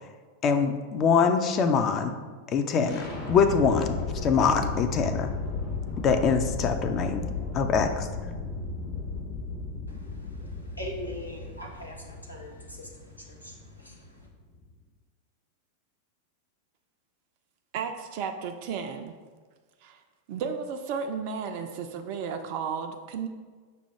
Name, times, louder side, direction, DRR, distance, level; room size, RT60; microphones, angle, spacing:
voice 1, 0.4-2.1 2.5-5.3 6.0-7.2 7.5-8.1, left 6 dB, 30° left, 7 dB, 0.4 m, -24 dB
sound 1, 2.8-14.7, left 3 dB, 50° left, 1.0 m, -35 dB
voice 2, 9.9-14.3, equal, 90° left, -2 dB, 0.8 m, -42 dB
voice 3, 17.7-19.1 19.8-20.0 20.3-23.3, right 6 dB, 45° right, 6 dB, 0.3 m, -33 dB
5.5 x 2.2 x 4.4 m, 1.5 s
figure-of-eight pair, 90°, 0 cm